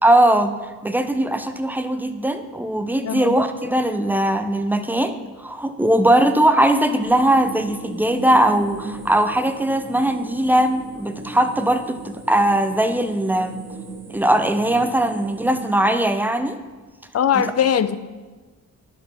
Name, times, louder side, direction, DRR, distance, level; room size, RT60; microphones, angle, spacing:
voice 1, 0.0-0.5 0.8-13.6 14.1-16.6 17.3-17.4, right 1 dB, 5° right, 9 dB, 0.5 m, -20 dB
voice 2, 3.0-3.4 17.1-18.0, left 8 dB, 50° left, 13 dB, 0.4 m, -20 dB
sound 1, 7.0-15.7, right 3 dB, 50° right, 1.5 m, -37 dB
10.5 x 4.6 x 4.2 m, 1.3 s
cardioid pair, 80°, 34 cm